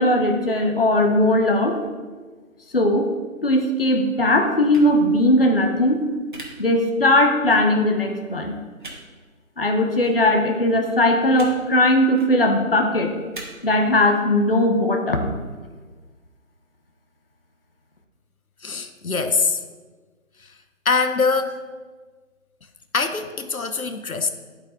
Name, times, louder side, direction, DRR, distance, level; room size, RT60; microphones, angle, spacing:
voice 1, 0.0-1.8 2.7-3.1 3.4-6.0 6.6-8.6 9.6-13.1 13.6-15.3, left 1 dB, 45° left, 4 dB, 0.8 m, -19 dB
sound 1, 4.7-4.9 6.3-6.4 7.5-7.6 8.8-8.9 10.0-10.1 11.3-11.5 12.1-12.3 13.3-13.4, right 2 dB, 35° right, 1.4 m, -38 dB
voice 2, 18.6-19.6 20.4-20.5 20.8-21.6 22.9-24.3, left 4 dB, 80° left, 8 dB, 0.9 m, -23 dB
11.5 x 4.9 x 3.9 m, 1.4 s
figure-of-eight pair, 170°, 42 cm